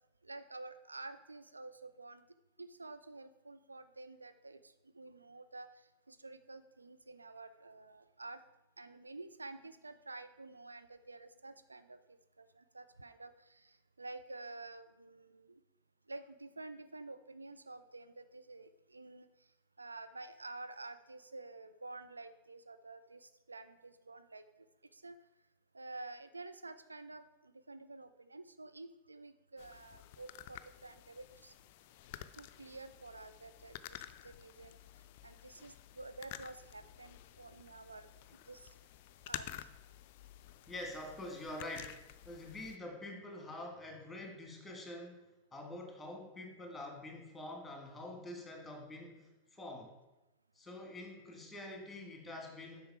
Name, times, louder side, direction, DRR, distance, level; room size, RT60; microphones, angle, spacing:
voice 1, 0.2-2.2 2.6-5.7 6.1-8.4 8.8-15.6 16.1-19.3 19.8-24.4 24.9-25.2 25.7-31.5 32.4-34.8 35.2-38.1 38.5-38.7 39.3-39.5, right 2 dB, 80° right, 11 dB, 0.3 m, -50 dB
sound 1, 29.6-42.8, left 12 dB, 50° left, 0.3 m, -51 dB
voice 2, 40.7-49.9 50.5-52.9, left 1 dB, 10° left, 1 dB, 2.0 m, -46 dB
7.8 x 5.5 x 4.7 m, 0.98 s
figure-of-eight pair, 90°, 0 cm